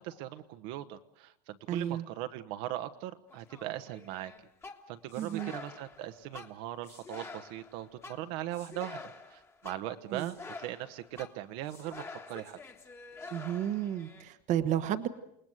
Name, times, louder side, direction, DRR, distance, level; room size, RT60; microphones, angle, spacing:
voice 1, 0.0-4.3 4.9-9.0 9.3-12.6, right 13 dB, 55° right, 8 dB, 1.2 m, -39 dB
voice 2, 1.7-2.1 5.2-5.5 10.1-10.3 13.3-15.1, right 11 dB, 35° right, 11 dB, 1.2 m, -32 dB
sound 1, 3.3-14.2, left 3 dB, 15° left, 1.6 m, -48 dB
28.5 x 20.0 x 8.0 m, 0.78 s
cardioid pair, 170°, 20 cm